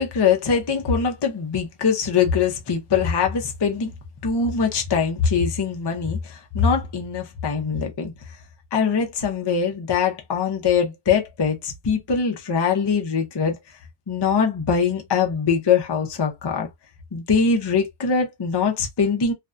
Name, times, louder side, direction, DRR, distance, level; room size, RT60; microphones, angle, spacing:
voice 1, 0.0-3.9 4.2-8.1 8.7-13.6 14.1-16.7 17.1-19.3, left 6 dB, 40° left, 0.4 m, -22 dB
2.6 x 2.2 x 2.3 m
omnidirectional pair, 1.3 m